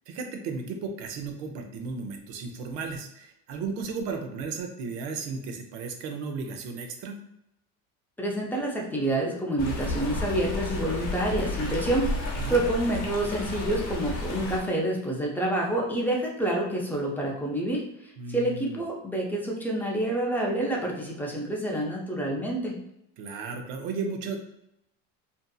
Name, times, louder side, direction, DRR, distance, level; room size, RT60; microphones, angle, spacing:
voice 1, 0.1-7.2 12.4-12.6 18.2-18.8 23.2-24.4, right 4 dB, 80° right, 4 dB, 0.6 m, -34 dB
voice 2, 8.2-22.7, right 1 dB, 5° left, -2 dB, 0.5 m, -28 dB
Stream, 9.6-14.6, left 1 dB, 45° left, 0.8 m, -32 dB
2.6 x 2.5 x 2.3 m, 0.82 s
cardioid pair, 120°, 36 cm